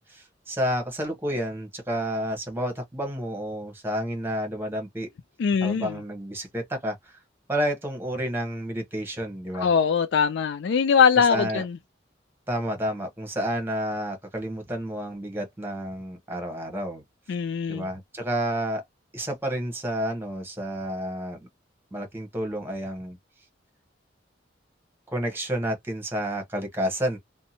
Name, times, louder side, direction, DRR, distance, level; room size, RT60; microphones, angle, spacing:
voice 1, 0.0-5.1 5.6-7.2 7.5-9.7 11.3-11.6 12.5-17.0 17.7-18.8 19.1-21.4 21.9-23.2 25.1-27.2, equal, 10° right, 0.9 m, -30 dB
voice 2, 5.4-6.0 9.6-11.8 17.3-17.9, left 6 dB, 65° left, 0.3 m, -22 dB
2.7 x 2.2 x 2.7 m
head